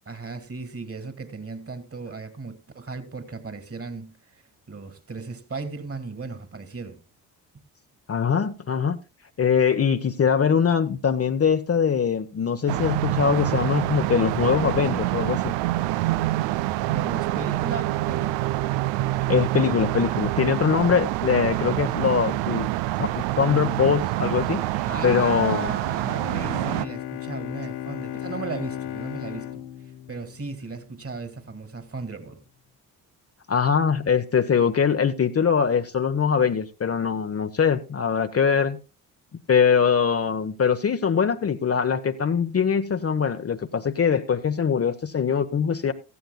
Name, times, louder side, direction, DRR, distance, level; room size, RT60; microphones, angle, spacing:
voice 1, 0.1-4.4 4.7-7.0 16.9-18.4 24.8-29.6 30.1-32.4, right 4 dB, 30° right, 2.2 m, -36 dB
voice 2, 8.1-9.0 9.4-15.5 19.3-22.7 23.0-25.7 33.5-38.8 39.5-45.9, left 7 dB, 30° left, 0.9 m, -22 dB
sound 1, 12.7-26.8, right 16 dB, 65° right, 0.6 m, -26 dB
Bowed string instrument, 26.0-30.9, left 12 dB, 60° left, 0.8 m, -35 dB
16.5 x 14.0 x 2.2 m
hypercardioid pair, 45°, 46 cm